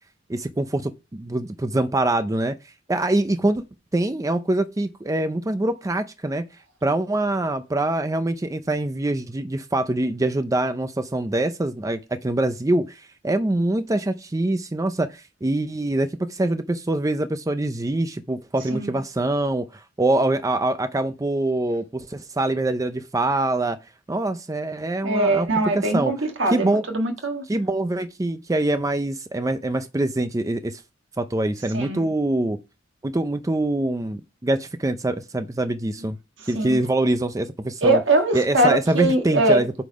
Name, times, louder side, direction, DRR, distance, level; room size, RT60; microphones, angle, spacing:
voice 1, 0.3-2.6 2.9-3.6 3.9-6.4 6.8-23.8 24.1-25.5 25.7-26.1 26.5-26.9 27.5-30.8 31.2-32.6 33.0-36.2 36.5-38.0 38.3-39.7, right 2 dB, 20° right, 0.5 m, -24 dB
voice 2, 25.0-27.4 31.7-32.1 36.5-36.8 37.8-39.6, right 1 dB, 70° right, 1.5 m, -21 dB
8.3 x 4.0 x 5.1 m
head